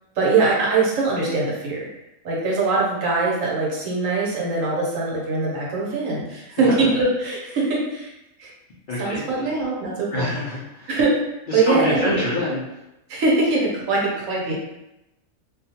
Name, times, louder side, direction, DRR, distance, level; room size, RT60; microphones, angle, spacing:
voice 1, 0.2-1.9 2.2-8.1 8.4-8.5 9.0-10.3 10.9-12.3 13.1-14.6, right 3 dB, 70° right, -4 dB, 1.1 m, -22 dB
voice 2, 6.5-6.9 8.9-9.5 10.1-10.9 11.5-12.6, left 2 dB, 75° left, -6 dB, 0.4 m, -26 dB
2.5 x 2.3 x 2.7 m, 0.92 s
omnidirectional pair, 1.5 m